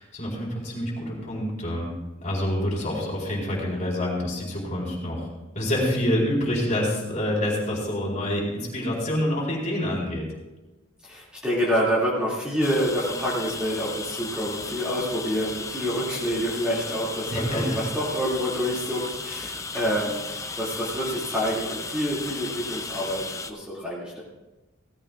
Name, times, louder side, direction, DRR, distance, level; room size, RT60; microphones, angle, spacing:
voice 1, 0.0-1.9 2.2-10.3 17.3-17.8, left 1 dB, 35° left, -3 dB, 4.3 m, -27 dB
voice 2, 11.0-24.2, equal, 5° right, -7 dB, 2.5 m, -27 dB
sound 1, 12.6-23.5, left 4 dB, 15° left, 0.6 m, -35 dB
17.0 x 14.5 x 2.5 m, 1.1 s
head